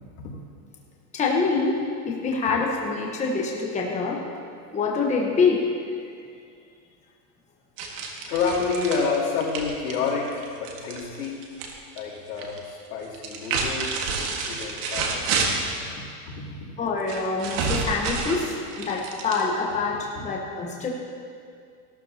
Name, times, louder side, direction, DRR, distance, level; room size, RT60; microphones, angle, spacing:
voice 1, 1.1-4.2 4.7-5.7 16.8-20.9, left 4 dB, 15° left, -1 dB, 1.2 m, -25 dB
sound 1, 7.8-11.7 12.0-12.6 13.1-15.8 17.1-19.8, right 4 dB, 55° right, 1.8 m, -29 dB
voice 2, 8.3-11.5 11.9-15.5, left 5 dB, 85° left, -5 dB, 3.4 m, -29 dB
16.5 x 12.5 x 2.9 m, 2.3 s
supercardioid pair, 145°, 46 cm